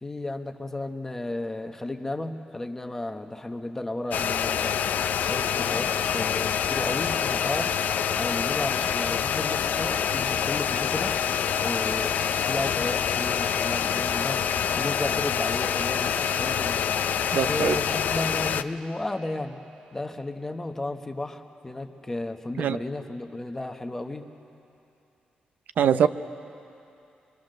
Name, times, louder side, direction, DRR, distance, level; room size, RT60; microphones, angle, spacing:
voice 1, 0.0-4.8 5.2-7.7 8.2-11.2 11.6-12.2 12.4-16.9 17.4-19.6 19.9-24.3 25.8-26.1, left 2 dB, 15° left, 6 dB, 1.0 m, -33 dB
sound 1, 4.1-18.6, left 8 dB, 75° left, 0.5 m, -26 dB
voice 2, 17.3-17.8 22.6-22.8 25.8-26.1, right 8 dB, 80° right, 11 dB, 0.6 m, -22 dB
26.5 x 23.5 x 6.5 m, 2.8 s
wide cardioid pair, 155°, 3 cm